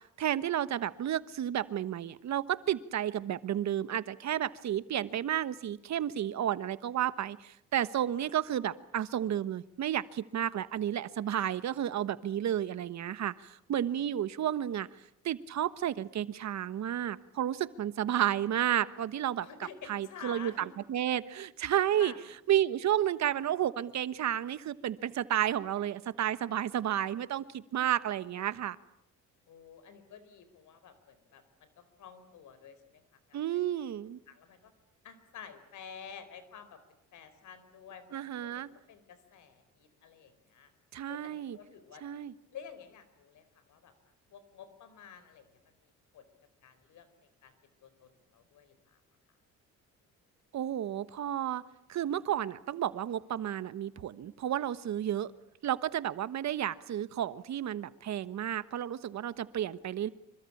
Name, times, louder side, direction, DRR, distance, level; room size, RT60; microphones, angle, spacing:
voice 1, 0.2-14.9 15.2-19.5 19.9-20.5 20.9-22.1 22.5-28.8 33.3-34.2 38.1-38.7 40.9-41.6 42.0-42.3 50.5-51.6 51.9-55.3 55.6-60.1, right 11 dB, 65° right, 15 dB, 1.3 m, -32 dB
voice 2, 8.0-8.3 13.9-14.0 19.4-21.0 22.0-22.2 29.5-33.6 34.3-34.7 35.0-36.8 37.1-40.7 41.1-42.0 42.5-43.9 44.3-46.2 46.6-47.1 47.4-49.0, left 7 dB, 75° left, 12 dB, 4.4 m, -51 dB
26.5 x 24.5 x 8.6 m, 0.77 s
cardioid pair, 90°, 30 cm